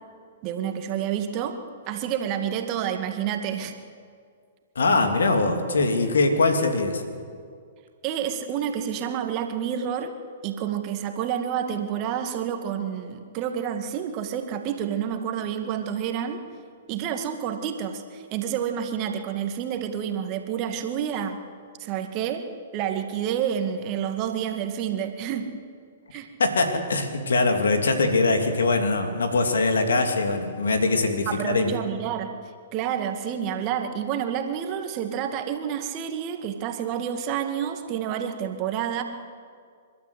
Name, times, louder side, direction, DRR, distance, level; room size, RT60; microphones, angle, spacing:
voice 1, 0.4-1.6 1.9-3.7 8.0-10.1 10.4-16.4 16.9-21.4 21.8-22.4 22.7-25.5 26.1-26.3 31.3-32.3 32.7-39.0, right 9 dB, 35° right, 6 dB, 2.1 m, -29 dB
voice 2, 4.7-7.0 26.4-31.7, left 3 dB, 70° left, 5 dB, 2.9 m, -22 dB
29.5 x 13.0 x 8.3 m, 2.1 s
figure-of-eight pair, 115°, 0 cm